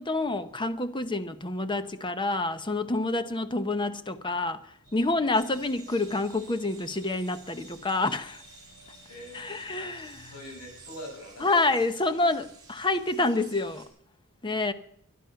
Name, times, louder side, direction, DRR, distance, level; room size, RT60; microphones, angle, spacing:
voice 1, 0.0-4.6 4.9-8.4 9.3-10.2 11.4-13.8 14.4-14.7, left 2 dB, 20° left, 0.8 m, -28 dB
sound 1, 4.8-11.2, left 1 dB, 45° left, 3.3 m, -54 dB
sound 2, 5.3-13.9, right 5 dB, 20° right, 5.2 m, -53 dB
voice 2, 9.1-9.9 10.2-11.8, equal, 90° left, 7.5 m, -44 dB
22.0 x 11.0 x 5.7 m
head